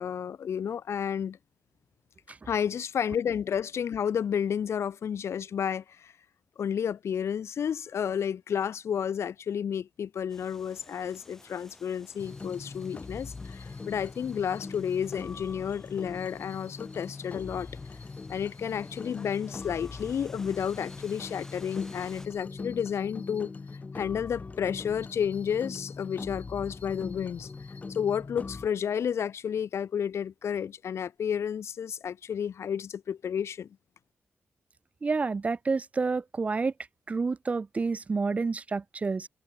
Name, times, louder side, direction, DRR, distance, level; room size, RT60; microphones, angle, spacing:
voice 1, 0.0-1.4 2.5-6.1 6.6-17.7 18.3-23.5 23.9-27.5 27.9-33.7, left 8 dB, 70° left, 1.1 m, -31 dB
sound 1, 10.3-22.3, left 1 dB, 10° left, 3.2 m, -55 dB
sound 2, 12.2-28.7, left 4 dB, 30° left, 4.5 m, -41 dB
voice 2, 35.0-36.7 37.1-39.3, right 4 dB, 30° right, 0.4 m, -29 dB
wide cardioid pair, 135°, 5 cm